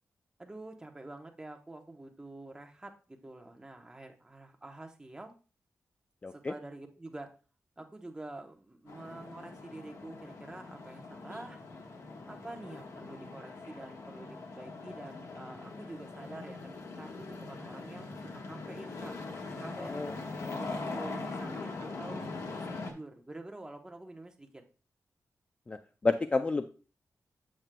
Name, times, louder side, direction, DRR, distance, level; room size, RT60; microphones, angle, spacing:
voice 1, 0.4-5.3 6.3-7.3 7.8-11.6 12.3-18.2 18.5-19.2 19.6-20.2 20.5-22.2 22.6-24.6, right 2 dB, 15° right, 3 dB, 0.8 m, -47 dB
voice 2, 6.2-6.5 19.8-20.1 20.5-20.6 25.7-26.7, left 3 dB, 25° left, 8 dB, 0.3 m, -31 dB
sound 1, 8.9-22.9, left 3 dB, 70° left, 1.2 m, -42 dB
7.8 x 7.4 x 2.2 m, 0.36 s
wide cardioid pair, 170°, 5 cm